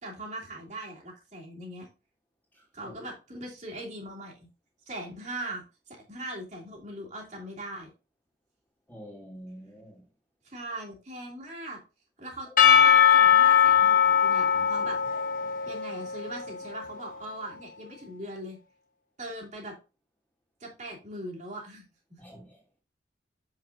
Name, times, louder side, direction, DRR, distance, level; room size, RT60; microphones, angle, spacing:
voice 1, 0.0-1.9 2.7-4.5 4.9-7.9 10.4-11.8 12.2-12.5 12.9-15.0 15.7-18.6 19.2-19.7 20.6-21.8 22.1-22.2, right 1 dB, 40° right, 2.6 m, -40 dB
voice 2, 2.5-2.9 8.9-10.0 22.2-22.6, equal, 10° left, 2.3 m, -47 dB
Percussion / Church bell, 12.6-16.9, left 8 dB, 45° left, 1.0 m, -21 dB
7.2 x 6.0 x 2.6 m
head